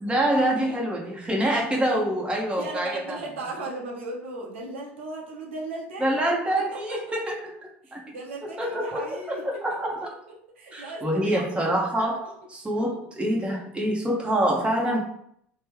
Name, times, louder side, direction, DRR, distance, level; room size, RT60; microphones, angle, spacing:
voice 1, 0.0-3.2 6.0-7.5 7.9-8.0 8.4-10.0 10.7-15.0, right 1 dB, 15° right, -1 dB, 1.0 m, -26 dB
voice 2, 2.6-6.2 6.6-7.1 7.8-9.6 10.6-11.7 14.7-15.0, right 2 dB, 80° right, -3 dB, 0.8 m, -37 dB
3.2 x 2.2 x 3.2 m, 0.70 s
hypercardioid pair, 75°, 6 cm